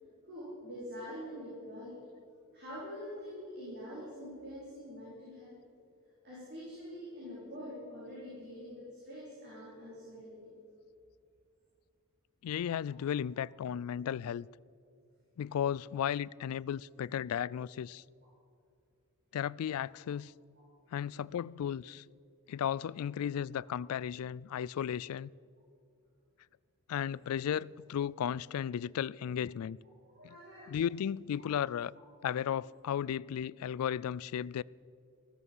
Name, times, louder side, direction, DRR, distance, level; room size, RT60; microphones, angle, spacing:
voice 1, 0.2-2.0 2.5-5.6 6.2-10.5 12.9-13.0 30.0-30.8, equal, 50° right, 4.7 m, -45 dB
voice 2, 12.4-14.5 15.4-18.0 19.3-20.3 20.9-22.0 22.5-25.3 26.9-29.8 30.2-30.3 30.7-31.9 32.2-34.6, left 9 dB, 75° left, 0.3 m, -35 dB
15.5 x 14.0 x 5.5 m
head